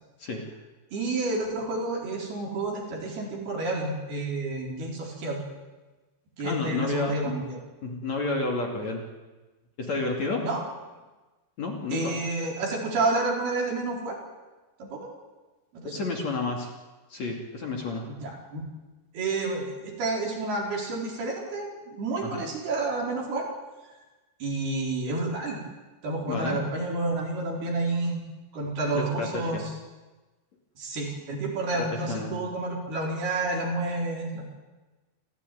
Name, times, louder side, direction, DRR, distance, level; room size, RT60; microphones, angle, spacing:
voice 1, 0.9-5.4 6.4-7.6 10.4-10.6 11.9-14.2 14.8-15.1 15.7-15.9 18.1-18.6 19.1-23.5 24.4-25.6 26.0-28.2 28.5-29.6 30.8-34.5, right 2 dB, 65° right, -1 dB, 6.2 m, -30 dB
voice 2, 6.4-7.3 7.8-9.0 9.8-10.5 11.6-12.2 15.8-16.7 17.1-18.1 22.2-22.4 26.3-26.6 28.9-29.6 31.8-32.3, left 3 dB, 45° left, 1 dB, 3.3 m, -30 dB
27.5 x 15.5 x 9.4 m, 1.2 s
omnidirectional pair, 5.0 m